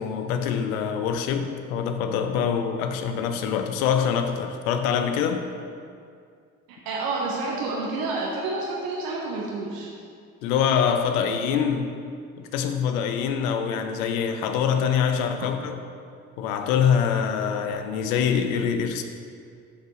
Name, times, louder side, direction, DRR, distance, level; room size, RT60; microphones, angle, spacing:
voice 1, 0.0-5.5 10.4-11.9 12.4-15.8 16.4-19.0, left 7 dB, 75° left, 7 dB, 0.8 m, -24 dB
voice 2, 6.8-9.9, right 3 dB, 60° right, -3 dB, 1.3 m, -29 dB
11.0 x 6.6 x 3.2 m, 2.3 s
hypercardioid pair, 55°, 41 cm